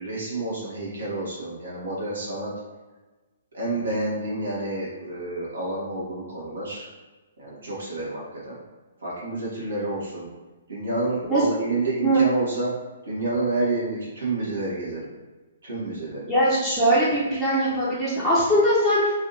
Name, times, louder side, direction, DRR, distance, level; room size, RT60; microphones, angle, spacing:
voice 1, 0.0-2.5 3.5-6.9 7.4-8.6 9.0-10.3 10.7-12.7 13.1-15.1 15.6-16.3, right 2 dB, 65° right, -6 dB, 1.3 m, -29 dB
voice 2, 16.3-19.1, right 1 dB, 5° left, -12 dB, 0.8 m, -21 dB
3.2 x 2.7 x 2.7 m, 1.2 s
figure-of-eight pair, 120°, 0 cm